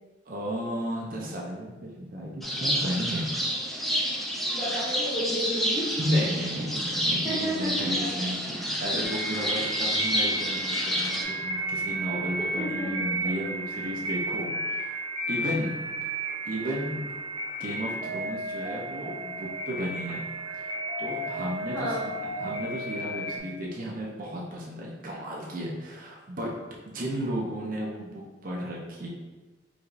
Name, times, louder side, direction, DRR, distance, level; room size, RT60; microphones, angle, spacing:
voice 1, 0.3-3.3 6.0-15.0 15.3-15.8 16.4-17.0 17.6-20.3 20.5-22.1 22.4-26.5 26.9-29.1, equal, 50° right, -2 dB, 0.5 m, -33 dB
sound 1, 2.4-11.2, equal, ahead, 0.4 m, -29 dB
voice 2, 4.5-5.8 7.2-8.1 9.4-9.5 12.4-13.1 21.7-22.2, equal, 20° left, -8 dB, 1.4 m, -32 dB
sound 2, 9.0-23.4, right 1 dB, 30° right, 1.2 m, -33 dB
4.7 x 2.7 x 2.5 m, 1.2 s
head